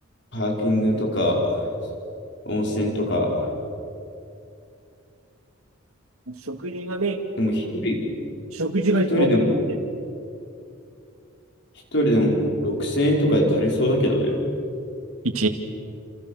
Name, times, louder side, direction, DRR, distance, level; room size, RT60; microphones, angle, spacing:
voice 1, 0.3-1.5 2.5-3.5 7.4-8.0 9.1-9.5 11.9-14.4, equal, 55° left, 0 dB, 5.1 m, -22 dB
voice 2, 6.3-7.2 8.5-9.3 15.2-15.5, right 2 dB, 85° right, 5 dB, 2.3 m, -24 dB
29.5 x 29.0 x 6.5 m, 2.6 s
head